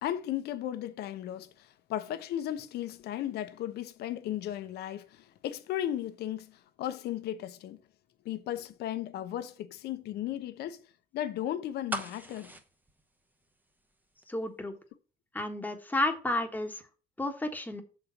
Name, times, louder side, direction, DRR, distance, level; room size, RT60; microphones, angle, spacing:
voice 1, 0.0-7.8 8.2-10.8 11.1-12.5, left 11 dB, 75° left, 0.9 m, -35 dB
sound 1, 11.9-13.9 14.2-14.3, right 1 dB, 10° right, 0.9 m, -39 dB
voice 2, 14.3-14.8 15.3-16.8 17.2-17.8, left 1 dB, 10° left, 1.3 m, -31 dB
6.8 x 4.2 x 5.8 m
cardioid pair, 110°, 17 cm